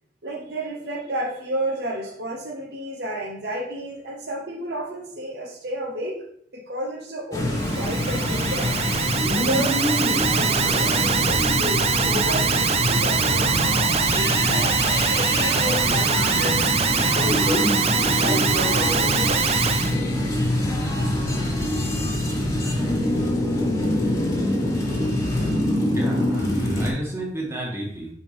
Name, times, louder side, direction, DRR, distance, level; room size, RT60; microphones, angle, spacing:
voice 1, 0.2-6.3 6.5-8.7 9.3-16.7 17.1-17.6 18.1-19.7, right 1 dB, 65° right, 0 dB, 1.0 m, -31 dB
sound 1, 7.3-26.9, left 1 dB, 20° left, 1.4 m, -24 dB
Alarm, 7.6-19.9, right 6 dB, 35° right, 0.4 m, -23 dB
voice 2, 25.9-28.1, right 1 dB, 15° right, -3 dB, 1.8 m, -30 dB
6.4 x 5.5 x 3.4 m, 0.69 s
head